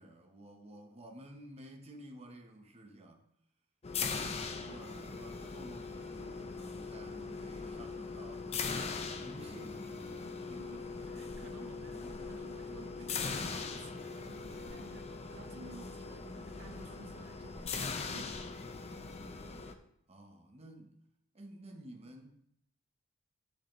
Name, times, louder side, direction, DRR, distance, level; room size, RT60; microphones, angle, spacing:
voice 1, 0.0-3.2 4.0-8.8 9.2-12.5 12.8-13.2 15.6-15.8 20.1-21.0 21.3-22.4, right 1 dB, 30° right, 0.8 m, -53 dB
sound 1, 3.8-19.7, left 4 dB, 30° left, 0.4 m, -41 dB
voice 2, 10.5-18.4, right 3 dB, 70° right, 0.6 m, -54 dB
sound 2, 11.1-11.5 12.0-12.5 14.1-15.1 16.7-18.6, equal, 5° right, 2.6 m, -58 dB
8.1 x 6.7 x 3.1 m
head